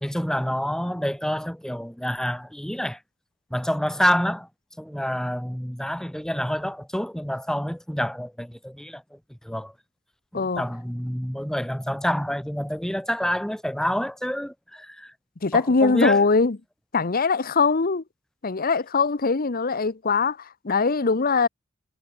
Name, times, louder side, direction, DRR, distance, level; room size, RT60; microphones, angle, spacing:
voice 1, 0.0-3.0 3.5-4.5 4.8-9.7 10.3-15.1 15.5-16.2, equal, 5° left, 1.2 m, -28 dB
voice 2, 15.4-16.6 16.9-18.0 18.4-21.5, left 4 dB, 45° left, 0.9 m, -22 dB
head